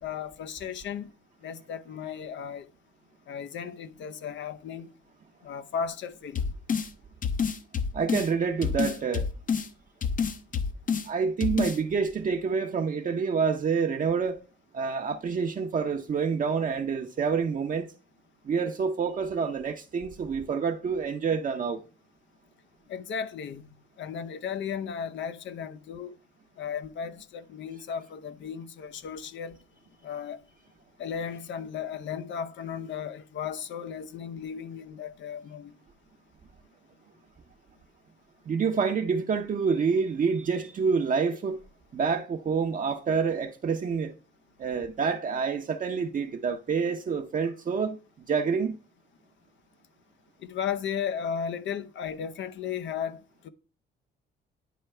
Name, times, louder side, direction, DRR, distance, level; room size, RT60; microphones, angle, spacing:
voice 1, 0.0-1.1 1.4-2.7 3.3-4.9 5.4-6.5 22.9-23.7 24.0-26.1 26.6-29.6 30.0-30.4 31.0-35.7 50.4-53.5, left 7 dB, 70° left, 0.8 m, -35 dB
sound 1, 6.4-6.9 7.2-8.3 8.6-9.7 10.0-11.1 11.4-11.8, left 6 dB, 45° left, 0.8 m, -28 dB
voice 2, 7.9-9.3 11.0-14.4 14.7-17.9 18.4-21.8 38.5-41.6 41.9-44.1 44.6-48.0 48.3-48.8, right 5 dB, 45° right, 0.7 m, -27 dB
10.0 x 4.5 x 3.3 m
cardioid pair, 90°, 20 cm